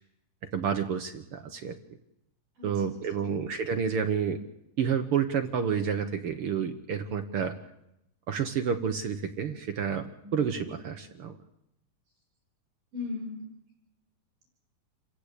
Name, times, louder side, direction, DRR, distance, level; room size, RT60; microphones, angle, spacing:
voice 1, 0.5-1.7 2.6-4.4 4.8-7.6 8.3-11.4, right 7 dB, 60° right, 7 dB, 1.5 m, -29 dB
voice 2, 2.6-3.3 10.2-10.5 12.9-13.5, left 3 dB, 80° right, -3 dB, 7.3 m, -39 dB
27.5 x 15.5 x 8.4 m, 0.84 s
omnidirectional pair, 3.7 m